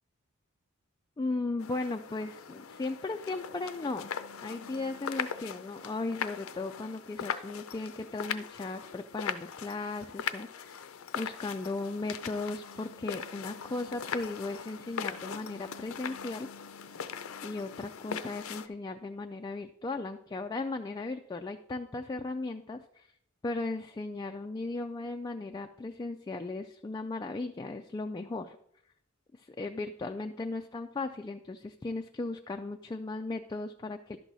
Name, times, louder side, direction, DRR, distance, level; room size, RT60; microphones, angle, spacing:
voice 1, 1.2-4.1 4.4-10.9 11.2-16.5 17.4-23.1 23.4-28.6 29.4-34.2, left 3 dB, 20° left, 5 dB, 0.3 m, -36 dB
sound 1, 1.6-18.7, left 7 dB, 75° left, 0.5 m, -40 dB
11.5 x 6.1 x 4.0 m, 0.72 s
head